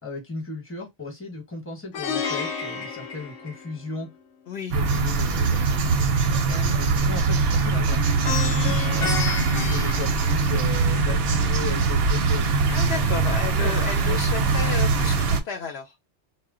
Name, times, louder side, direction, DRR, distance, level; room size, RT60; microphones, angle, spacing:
voice 1, 0.0-4.1 4.7-6.1 6.8-12.6 13.5-13.7 14.0-14.3, left 3 dB, 10° left, 0.9 m, -35 dB
Plucked string instrument, 1.9-4.1 8.2-10.9, left 5 dB, 90° left, 1.0 m, -31 dB
sound 1, 4.7-15.4, right 4 dB, 65° right, 0.7 m, -22 dB
voice 2, 6.5-6.8 12.7-15.9, left 5 dB, 65° left, 0.8 m, -32 dB
2.1 x 2.1 x 3.5 m
omnidirectional pair, 1.2 m